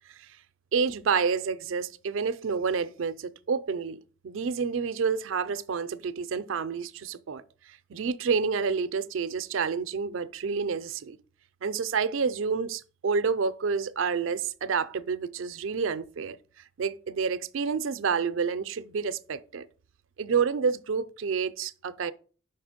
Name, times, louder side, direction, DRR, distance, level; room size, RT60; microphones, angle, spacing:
voice 1, 0.7-7.4 7.9-11.2 11.6-16.4 16.8-19.7 20.2-22.1, right 5 dB, 85° right, 0.4 m, -29 dB
5.8 x 4.3 x 5.0 m
head